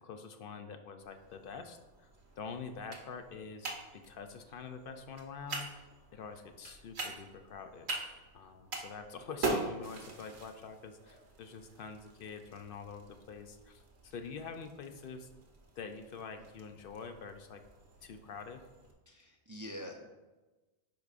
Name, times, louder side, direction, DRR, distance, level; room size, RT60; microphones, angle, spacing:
voice 1, 0.0-5.9 6.1-7.9 8.3-15.3 15.8-17.6 18.0-18.6, left 5 dB, 65° left, 7 dB, 0.7 m, -46 dB
sound 1, 1.0-18.9, right 3 dB, 90° right, 1.2 m, -44 dB
voice 2, 19.1-20.1, equal, 25° right, 1 dB, 0.4 m, -45 dB
10.0 x 4.7 x 2.5 m, 1.1 s
omnidirectional pair, 1.0 m